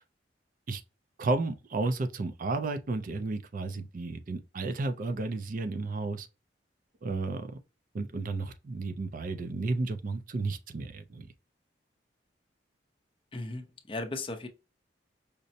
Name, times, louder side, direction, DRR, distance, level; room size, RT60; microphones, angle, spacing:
voice 1, 1.2-6.3 7.0-7.6 7.9-11.3, right 3 dB, 45° right, 0.4 m, -32 dB
voice 2, 13.3-14.5, left 2 dB, 30° left, 0.5 m, -36 dB
5.1 x 2.0 x 2.7 m
head